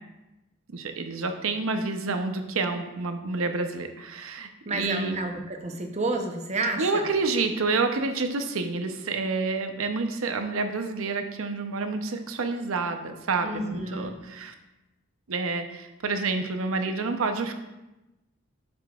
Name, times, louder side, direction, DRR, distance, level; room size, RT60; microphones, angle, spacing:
voice 1, 0.7-5.2 6.8-14.5 15.3-17.5, right 3 dB, 80° right, 6 dB, 0.7 m, -28 dB
voice 2, 4.7-7.1 13.4-14.2, right 2 dB, 35° right, 4 dB, 0.7 m, -30 dB
9.3 x 6.9 x 2.4 m, 0.99 s
head